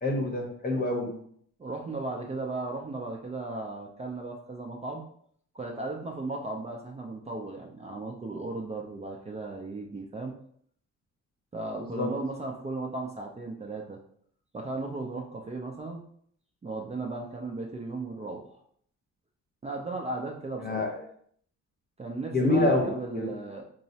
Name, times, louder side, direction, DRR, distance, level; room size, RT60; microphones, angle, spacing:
voice 1, 0.0-1.2 11.8-12.1 20.6-20.9 22.3-23.3, left 2 dB, 30° left, 2 dB, 0.8 m, -27 dB
voice 2, 1.6-5.0 5.5-10.3 11.5-14.0 14.5-16.0 16.6-18.6 19.6-20.9 22.0-23.6, right 2 dB, 20° right, 0 dB, 0.5 m, -36 dB
4.5 x 2.0 x 2.7 m, 0.64 s
cardioid pair, 90°, 30 cm